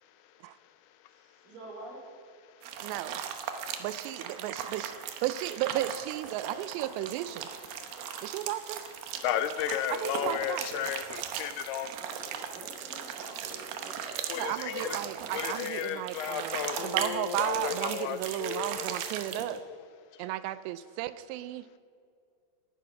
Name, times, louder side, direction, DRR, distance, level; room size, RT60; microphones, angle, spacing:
voice 1, 1.4-2.0 3.6-3.8 12.0-14.8, right 1 dB, 55° right, -3 dB, 5.4 m, -48 dB
sound 1, 2.6-19.6, right 8 dB, 75° right, 2.7 m, -38 dB
voice 2, 2.8-3.2 3.8-4.9 5.2-7.5 8.2-8.8 9.9-10.8 14.4-19.6 20.2-21.8, right 14 dB, 90° right, 15 dB, 2.7 m, -34 dB
voice 3, 9.2-11.9 14.3-15.0 15.3-19.0 19.3-19.7, left 10 dB, 80° left, 11 dB, 2.5 m, -34 dB
19.5 x 10.0 x 5.9 m, 2.3 s
omnidirectional pair, 4.9 m